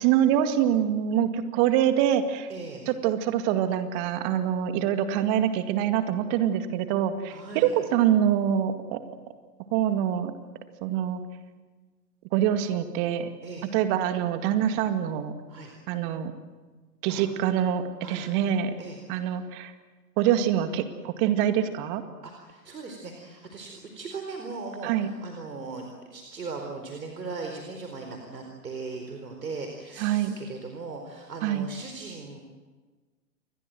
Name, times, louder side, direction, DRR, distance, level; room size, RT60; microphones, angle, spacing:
voice 1, 0.0-2.5 2.9-9.0 9.7-10.3 10.8-11.2 12.3-13.3 13.7-15.3 15.9-16.3 17.0-18.7 19.1-19.7 20.2-22.0 24.8-25.1 30.0-30.4 31.4-31.7, right 10 dB, 30° right, 8 dB, 2.1 m, -25 dB
voice 2, 2.5-2.8 7.3-7.7 13.4-13.7 15.5-15.7 17.1-17.3 18.0-18.3 18.8-19.3 22.2-32.4, right 4 dB, 75° right, 3 dB, 4.4 m, -39 dB
28.5 x 22.5 x 7.9 m, 1.4 s
figure-of-eight pair, 120°, 50 cm